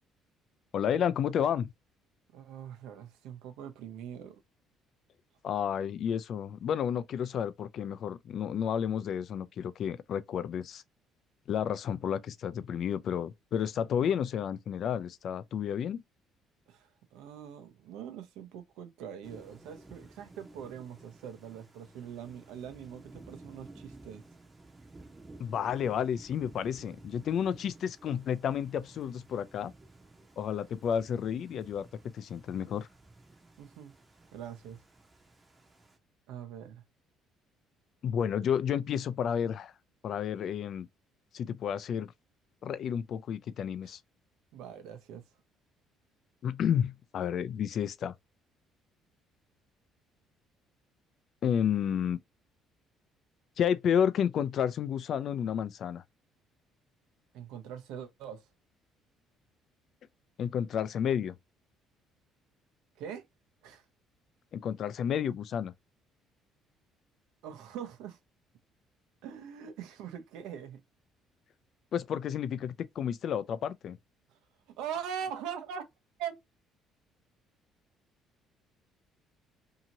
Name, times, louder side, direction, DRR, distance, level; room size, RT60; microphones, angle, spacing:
voice 1, 0.7-1.7 5.4-10.8 11.5-16.0 25.4-29.7 30.4-31.9 32.1-32.9 38.0-39.7 40.0-40.9 41.3-42.1 42.6-44.0 46.4-48.1 51.4-52.2 53.6-56.0 60.4-61.4 64.5-65.7 71.9-74.0, left 8 dB, 50° left, 0.4 m, -31 dB
voice 2, 2.3-4.4 16.7-24.2 33.6-34.0 34.3-34.8 36.3-36.8 43.8-43.9 44.5-45.2 57.3-58.4 63.0-63.3 63.6-63.8 67.4-68.2 69.2-70.8 74.8-75.9 76.2-76.4, right 8 dB, 85° right, 0.7 m, -42 dB
Thunder / Rain, 19.2-36.0, right 2 dB, 15° right, 0.7 m, -54 dB
2.8 x 2.6 x 2.8 m
cardioid pair, 135°, 0 cm